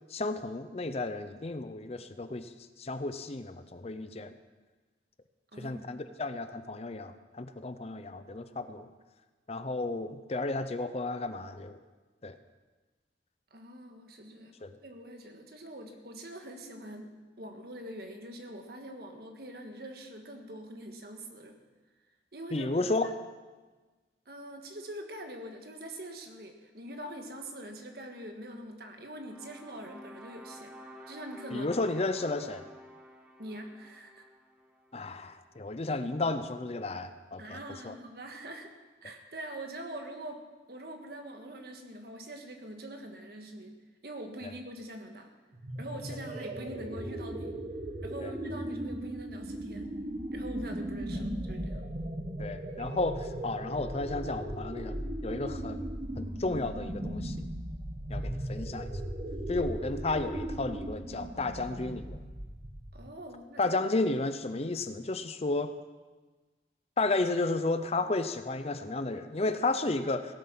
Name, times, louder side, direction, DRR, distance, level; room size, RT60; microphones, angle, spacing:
voice 1, 0.1-2.5 2.8-4.3 5.6-8.9 9.5-11.8 12.2-12.4 14.6-14.7 22.5-23.1 31.5-32.6 34.9-37.6 37.8-37.9 48.2-48.3 52.4-55.9 56.2-57.4 58.1-58.9 59.5-62.2 63.6-65.7 67.0-70.3, left 2 dB, 35° left, 10 dB, 0.6 m, -33 dB
voice 2, 5.5-5.8 13.5-14.5 14.8-21.6 22.3-22.7 23.0-23.1 24.2-30.7 31.1-31.7 33.4-34.2 37.4-38.7 39.0-40.4 40.7-43.7 44.0-45.3 45.8-47.5 48.0-49.9 50.3-51.9 62.9-63.7, right 1 dB, 60° right, 4 dB, 1.6 m, -44 dB
sound 1, 29.1-35.4, equal, 10° right, 1.2 m, -51 dB
sound 2, 45.5-63.1, right 1 dB, 40° right, 1.3 m, -37 dB
17.0 x 8.6 x 5.9 m, 1.3 s
head